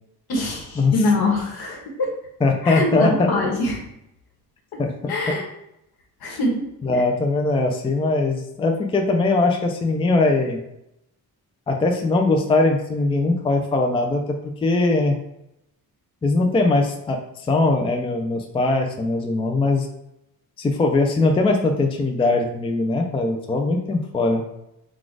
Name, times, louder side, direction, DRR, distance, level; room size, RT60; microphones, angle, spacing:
voice 1, 0.3-2.1 2.6-3.8 5.1-5.5 6.2-6.7 6.9-7.0, left 2 dB, 70° left, 0 dB, 1.3 m, -23 dB
voice 2, 2.4-3.3 4.8-5.1 6.3-6.4 6.8-10.6 11.7-14.4 14.6-15.2 16.2-19.9 20.6-24.4, left 2 dB, 15° left, 3 dB, 0.4 m, -21 dB
4.1 x 2.4 x 4.6 m, 0.82 s
cardioid pair, 150°, 38 cm